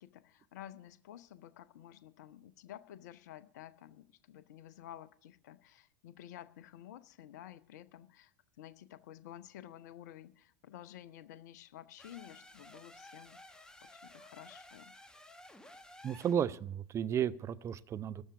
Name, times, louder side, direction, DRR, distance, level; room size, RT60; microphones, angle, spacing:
voice 1, 0.0-14.9, left 12 dB, 55° left, 0.7 m, -52 dB
sound 1, 12.0-16.5, left 1 dB, 5° left, 1.1 m, -55 dB
voice 2, 16.0-18.2, right 9 dB, 25° right, 0.5 m, -33 dB
13.0 x 7.1 x 9.7 m
figure-of-eight pair, 80°, 11 cm